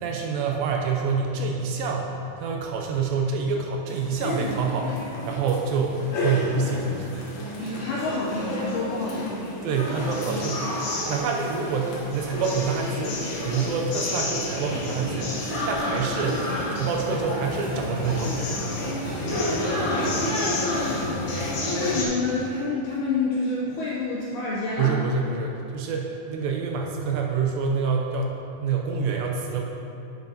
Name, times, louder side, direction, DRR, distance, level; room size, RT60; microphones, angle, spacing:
voice 1, 0.0-7.2 9.6-18.4 24.8-29.6, right 5 dB, 80° right, 1 dB, 2.2 m, -27 dB
sound 1, 3.9-22.1, left 1 dB, 65° left, 2.0 m, -30 dB
sound 2, 7.1-7.3 7.6-12.8 13.1-13.2 13.5-14.1 14.4-15.2 15.5-16.3 16.7-17.8 18.1-19.6 20.0-22.1, right 2 dB, 55° right, 1.5 m, -40 dB
voice 2, 7.6-9.6 19.6-21.0 21.6-25.0, left 3 dB, 80° left, -6 dB, 1.8 m, -28 dB
sound 3, 10.0-21.7, left 1 dB, 45° left, 2.0 m, -51 dB
10.5 x 6.6 x 2.8 m, 2.9 s
omnidirectional pair, 4.5 m